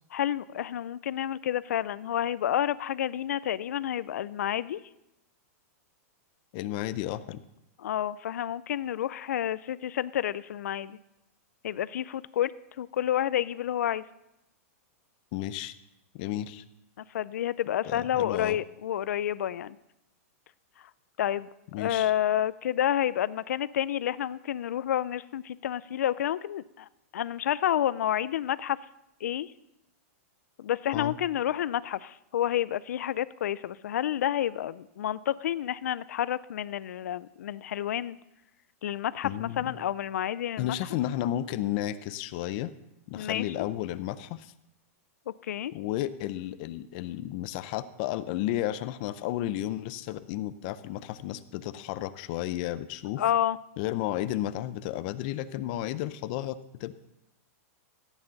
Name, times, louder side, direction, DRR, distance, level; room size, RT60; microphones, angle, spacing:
voice 1, 0.1-4.8 7.8-11.0 11.6-12.5 12.8-14.0 17.1-19.8 21.2-26.9 27.1-28.8 29.2-29.5 30.6-38.2 38.8-40.8 43.1-43.4 45.4-45.7 53.2-53.6, left 11 dB, 90° left, 18 dB, 0.4 m, -29 dB
voice 2, 6.5-7.4 15.3-15.7 16.1-16.6 17.8-18.6 21.7-22.1 30.9-31.2 39.2-39.8 40.6-42.7 43.1-44.5 45.7-53.2 53.8-56.9, left 13 dB, 35° left, 14 dB, 0.5 m, -33 dB
14.5 x 9.1 x 4.0 m, 0.86 s
supercardioid pair, 170°, 8 cm